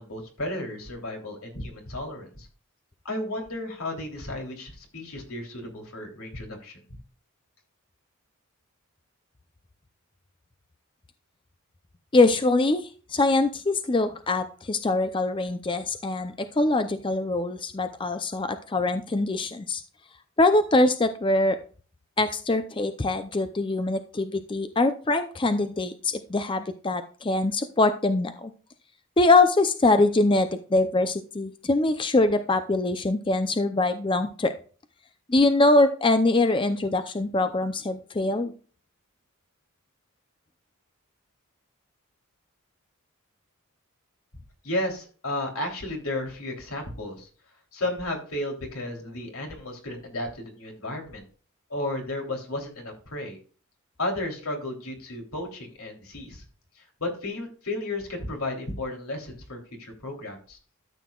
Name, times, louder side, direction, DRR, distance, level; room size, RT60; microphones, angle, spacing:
voice 1, 0.0-2.5 3.0-6.8 44.6-47.3 47.7-51.2 51.7-53.4 54.0-56.4 57.0-60.6, left 1 dB, 85° left, 2 dB, 3.2 m, -33 dB
voice 2, 12.1-19.8 20.4-21.6 22.2-28.5 29.2-34.5 35.3-38.5, left 2 dB, 25° left, 9 dB, 0.5 m, -23 dB
13.0 x 7.9 x 2.4 m, 0.39 s
head